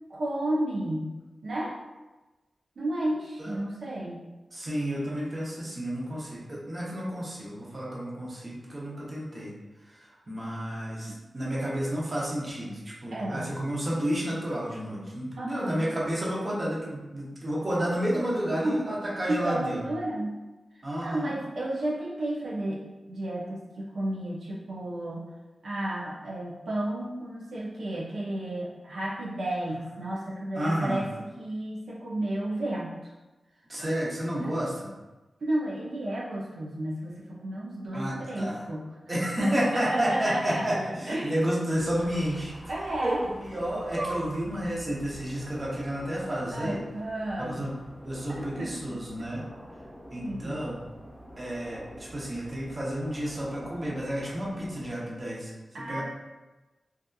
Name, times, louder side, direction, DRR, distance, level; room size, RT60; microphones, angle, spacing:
voice 1, 0.1-1.2 1.4-1.8 2.8-4.2 11.1-11.2 13.1-13.5 15.4-15.9 18.5-18.8 19.3-20.4 21.0-25.2 25.6-33.1 33.8-33.9 34.4-34.5 35.4-38.9 39.4-40.7 41.1-41.4 42.7-43.2 44.0-44.2 46.5-47.7 48.4-49.3 50.2-50.6 55.7-56.0, right 1 dB, 80° right, -5 dB, 0.4 m, -32 dB
voice 2, 4.5-9.5 9.9-19.8 20.8-21.3 30.5-31.0 33.7-34.9 37.9-38.6 39.1-42.5 43.0-46.8 47.4-47.7 48.0-49.4 50.1-50.8 51.4-55.5 55.8-56.0, equal, 30° right, -5 dB, 0.6 m, -31 dB
sound 1, 41.8-54.9, equal, 5° left, 0.3 m, -47 dB
2.7 x 2.3 x 2.2 m, 1.1 s
wide cardioid pair, 125°, 0 cm